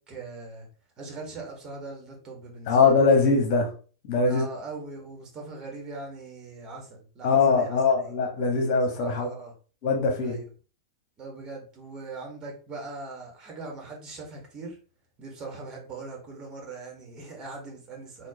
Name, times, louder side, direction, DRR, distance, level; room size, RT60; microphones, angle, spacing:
voice 1, 0.1-0.7 1.0-2.9 4.2-8.1 9.0-9.5 10.2-10.5 11.2-14.8 15.2-18.3, right 3 dB, 30° right, 1.6 m, -40 dB
voice 2, 2.7-3.7 4.0-4.4 7.2-9.3 9.8-10.4, left 4 dB, 50° left, 1.4 m, -22 dB
4.3 x 2.7 x 2.9 m
hypercardioid pair, 100°, 3 cm